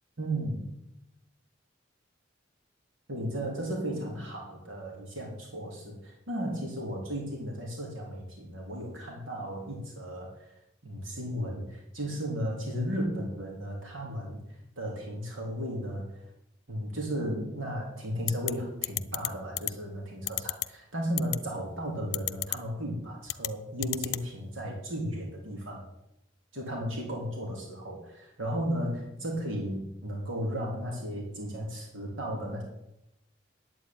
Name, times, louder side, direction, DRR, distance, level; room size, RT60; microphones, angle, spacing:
voice 1, 0.2-0.7 3.1-10.5 10.8-14.4 14.8-16.2 16.7-20.6 20.9-25.9 26.5-32.6, equal, 80° right, -1 dB, 3.4 m, -34 dB
sound 1, 18.3-18.5 18.8-19.3 19.6-19.7 20.3-20.7 21.2-21.4 22.1-22.6 23.3-23.5 23.8-24.2, left 16 dB, 55° left, 0.6 m, -30 dB
11.0 x 8.9 x 9.2 m, 0.84 s
head